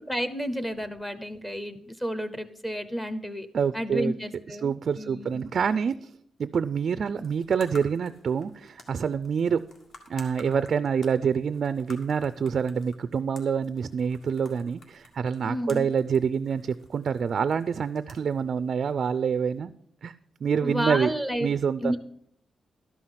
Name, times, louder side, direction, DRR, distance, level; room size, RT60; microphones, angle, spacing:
voice 1, 0.0-3.5 3.7-4.7 5.0-5.5 15.4-15.9 20.6-21.5 21.8-22.0, equal, 10° left, 11 dB, 0.7 m, -31 dB
voice 2, 3.5-4.1 4.6-6.1 6.4-9.6 10.1-19.7 20.0-20.1 20.4-21.1 21.4-22.0, right 6 dB, 45° right, 13 dB, 0.3 m, -26 dB
sound 1, 7.1-19.6, left 2 dB, 55° left, 1.8 m, -53 dB
12.5 x 5.7 x 7.8 m, 0.67 s
wide cardioid pair, 170°, 0 cm